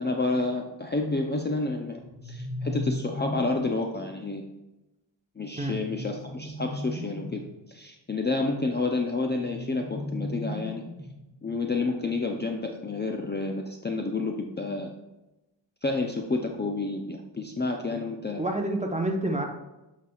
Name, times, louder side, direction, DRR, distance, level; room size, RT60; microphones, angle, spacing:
voice 1, 0.0-4.4 5.4-7.4 7.7-10.8 11.4-14.9 15.8-18.4, left 3 dB, 25° left, 2 dB, 0.5 m, -29 dB
sound 1, 2.0-3.8 5.6-7.5 9.4-11.3, left 1 dB, ahead, 2.1 m, -36 dB
voice 2, 18.4-19.4, right 1 dB, 15° right, 2 dB, 0.9 m, -28 dB
8.2 x 5.9 x 2.4 m, 1.0 s
wide cardioid pair, 105°, 46 cm